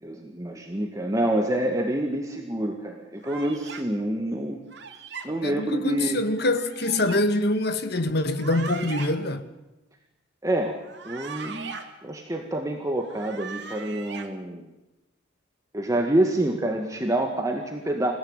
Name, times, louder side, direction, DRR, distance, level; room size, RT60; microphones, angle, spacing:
voice 1, 0.0-4.6 5.2-6.2 10.4-10.8 11.0-11.7 12.0-14.7 15.7-18.1, right 1 dB, 20° right, 1.9 m, -27 dB
sound 1, 3.2-3.8 4.7-5.3 6.4-7.2 8.2-9.1 10.8-11.8 13.0-14.3, right 5 dB, 65° right, 2.7 m, -39 dB
voice 2, 5.4-9.4, left 1 dB, 60° left, 1.7 m, -25 dB
27.0 x 16.5 x 9.0 m
head